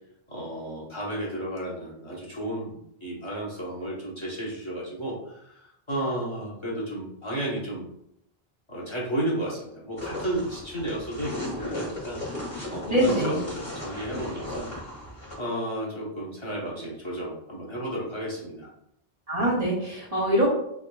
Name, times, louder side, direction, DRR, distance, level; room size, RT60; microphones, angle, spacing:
voice 1, 0.3-7.9 8.7-12.2 12.7-14.7 15.4-18.7, right 1 dB, 30° left, -5 dB, 1.0 m, -33 dB
sound 1, 10.0-15.3, left 2 dB, 50° left, 1.5 m, -36 dB
voice 2, 12.9-13.4 19.3-20.5, right 1 dB, 40° right, -4 dB, 0.7 m, -23 dB
3.5 x 3.5 x 2.2 m, 0.75 s
omnidirectional pair, 1.0 m